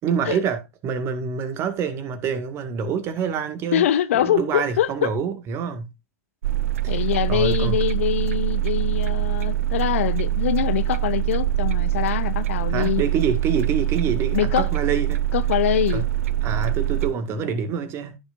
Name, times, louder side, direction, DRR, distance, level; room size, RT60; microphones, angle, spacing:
voice 1, 0.0-3.9 4.1-5.9 6.8-7.0 7.3-7.8 12.7-15.2 15.9-16.1 16.4-18.2, right 6 dB, 30° right, 1.9 m, -26 dB
voice 2, 3.7-5.1 6.9-13.0 14.3-14.7 15.3-16.0, left 11 dB, 55° left, 0.7 m, -23 dB
sound 1, 6.4-17.1, right 12 dB, 60° right, 0.4 m, -24 dB
15.0 x 6.4 x 2.6 m
figure-of-eight pair, 100°, 8 cm